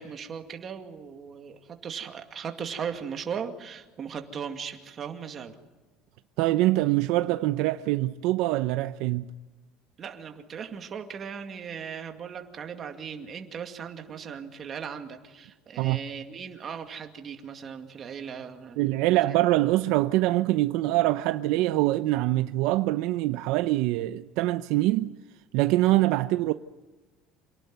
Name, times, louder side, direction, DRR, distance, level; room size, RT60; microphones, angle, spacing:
voice 1, 0.0-5.5 10.0-19.2, right 7 dB, 25° right, 2.2 m, -38 dB
voice 2, 6.4-9.2 15.8-16.0 18.8-25.1 25.5-26.5, right 17 dB, 60° right, 0.7 m, -24 dB
27.5 x 18.5 x 9.5 m
cardioid pair, 175°, 0 cm